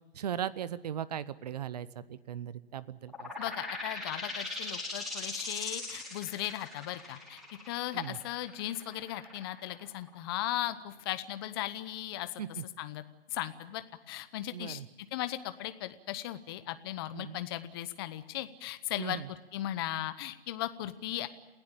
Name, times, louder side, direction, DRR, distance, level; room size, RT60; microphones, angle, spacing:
voice 1, 0.1-3.3 7.9-8.2 12.4-12.6 14.5-14.9 17.1-17.4 19.0-19.3, right 9 dB, 40° right, 18 dB, 0.9 m, -38 dB
sound 1, 3.1-10.4, left 2 dB, ahead, 4.6 m, -40 dB
voice 2, 3.4-7.4 7.7-12.4 12.8-13.0 13.3-14.8 15.1-21.3, left 14 dB, 20° left, 12 dB, 0.9 m, -37 dB
28.5 x 16.0 x 8.8 m, 1.1 s
hypercardioid pair, 145°, 32 cm